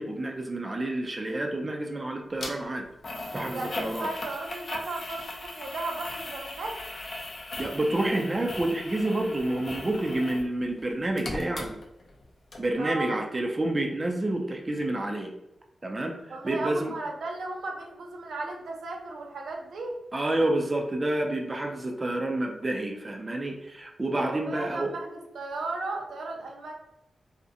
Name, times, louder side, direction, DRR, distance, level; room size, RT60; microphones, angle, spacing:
voice 1, 0.0-2.9 3.3-4.1 7.6-11.8 12.6-15.3 15.8-17.0 20.1-24.9, right 1 dB, 25° right, 2 dB, 0.3 m, -29 dB
sound 1, 2.4-2.5 3.0-10.5 10.8-12.2 12.5-12.6, left 2 dB, 50° left, 0.4 m, -38 dB
voice 2, 3.5-6.7 12.8-13.2 16.3-20.0 24.2-25.1 25.3-26.7, right 2 dB, 85° right, 1 dB, 0.5 m, -35 dB
2.4 x 2.0 x 2.6 m, 0.91 s
wide cardioid pair, 105°, 0 cm